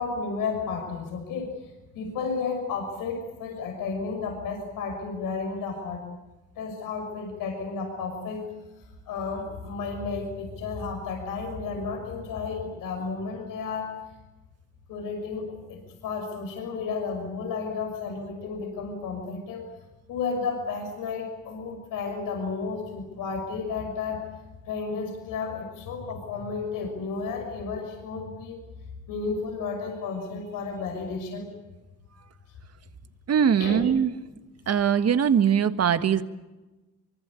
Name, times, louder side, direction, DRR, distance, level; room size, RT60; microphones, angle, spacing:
voice 1, 0.0-1.6 1.9-6.1 6.6-8.5 9.1-13.9 14.9-19.7 20.1-24.3 24.7-28.6 29.1-31.5 33.6-33.8, left 4 dB, 90° left, 3 dB, 6.1 m, -32 dB
voice 2, 33.3-34.1 34.7-36.2, right 8 dB, 50° right, 10 dB, 1.7 m, -21 dB
24.5 x 24.0 x 8.5 m, 1.1 s
cardioid pair, 105°, 32 cm